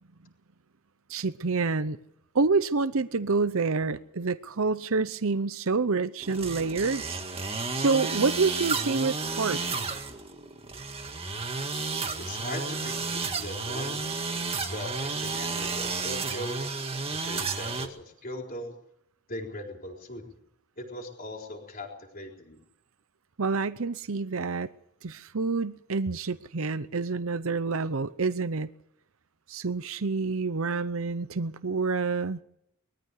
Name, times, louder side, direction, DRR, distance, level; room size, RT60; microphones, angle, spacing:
voice 1, 1.1-2.0 2.3-7.0 7.8-9.6 23.4-24.7 25.0-28.7 29.5-32.4, right 4 dB, 65° right, 13 dB, 0.7 m, -27 dB
sound 1, 6.2-17.9, right 4 dB, 25° right, 2.0 m, -32 dB
voice 2, 12.2-14.0 14.7-16.6 17.1-18.8 19.3-20.4 20.8-22.6, left 1 dB, 40° left, 1 dB, 4.3 m, -39 dB
22.5 x 14.0 x 8.5 m, 0.75 s
head